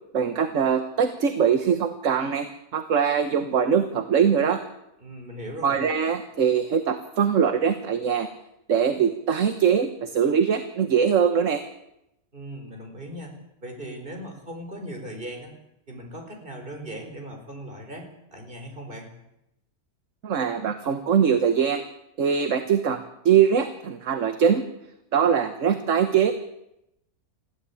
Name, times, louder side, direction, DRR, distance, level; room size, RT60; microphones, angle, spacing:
voice 1, 0.1-2.5 2.7-4.6 5.6-8.3 8.7-11.6 20.2-21.8 22.2-24.6 25.1-26.3, right 7 dB, 60° right, 8 dB, 1.5 m, -22 dB
voice 2, 5.0-5.8 12.3-13.3 13.6-15.5 15.9-19.1, right 1 dB, 35° right, 2 dB, 4.7 m, -38 dB
21.0 x 15.0 x 8.4 m, 0.85 s
omnidirectional pair, 1.6 m